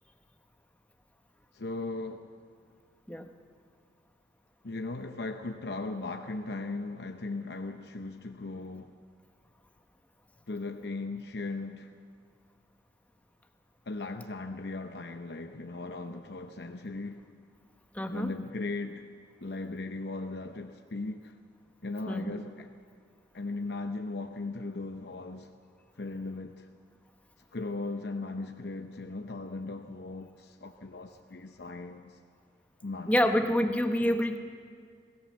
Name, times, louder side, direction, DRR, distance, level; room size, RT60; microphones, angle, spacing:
voice 1, 1.5-2.3 4.6-8.9 10.5-11.9 13.9-17.2 18.1-19.0 19.4-21.3 21.8-22.7 23.3-25.5 26.0-26.7 27.5-32.1 32.8-33.5 34.0-34.2, left 3 dB, 70° left, 0.8 m, -38 dB
voice 2, 17.9-18.3 22.1-22.4 33.1-34.4, equal, 10° left, 1.0 m, -27 dB
22.5 x 17.0 x 7.4 m
head